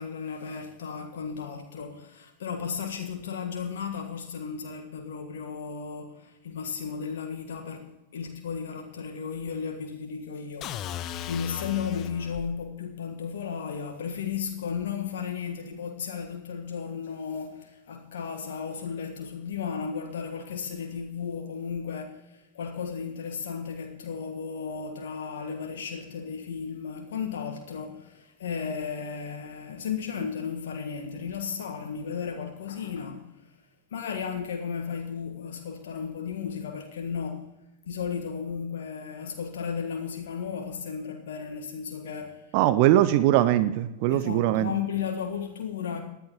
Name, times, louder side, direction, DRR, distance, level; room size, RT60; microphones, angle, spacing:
voice 1, 0.0-33.5 33.9-37.5 37.8-42.6 44.1-46.0, left 6 dB, 60° left, 1.5 m, -34 dB
sound 1, 10.6-12.5, left 11 dB, 35° left, 0.6 m, -37 dB
voice 2, 42.5-44.7, right 13 dB, 45° right, 0.6 m, -21 dB
19.0 x 11.5 x 3.0 m
figure-of-eight pair, 90°, 0 cm